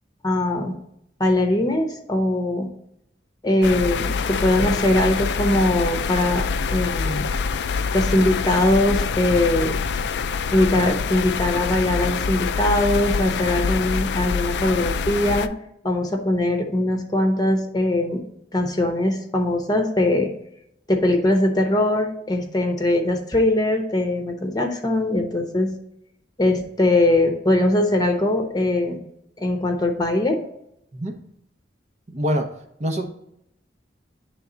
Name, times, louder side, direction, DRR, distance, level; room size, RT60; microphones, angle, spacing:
voice 1, 0.2-0.8 1.2-2.7 3.4-6.4 6.7-7.3 7.9-9.8 10.5-15.5 15.8-18.2 18.5-20.3 20.9-25.7 26.4-29.0 29.4-30.4, left 1 dB, 20° left, 3 dB, 0.9 m, -21 dB
sound 1, 3.6-15.5, left 5 dB, 70° left, 0.4 m, -25 dB
voice 2, 32.1-32.5 32.8-33.0, equal, 40° right, 4 dB, 0.9 m, -25 dB
9.7 x 3.5 x 3.9 m, 0.77 s
head